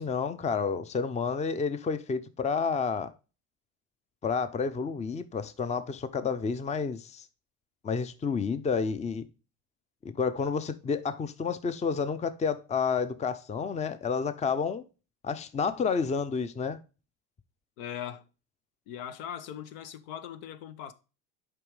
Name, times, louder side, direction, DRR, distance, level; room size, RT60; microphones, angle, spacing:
voice 1, 0.0-3.1 4.2-7.3 7.8-9.2 10.2-14.8 15.2-16.8, left 5 dB, 15° left, 0.6 m, -30 dB
voice 2, 17.8-18.2 18.9-20.9, left 9 dB, 70° left, 0.9 m, -40 dB
7.6 x 5.0 x 3.1 m
hypercardioid pair, 75°, 42 cm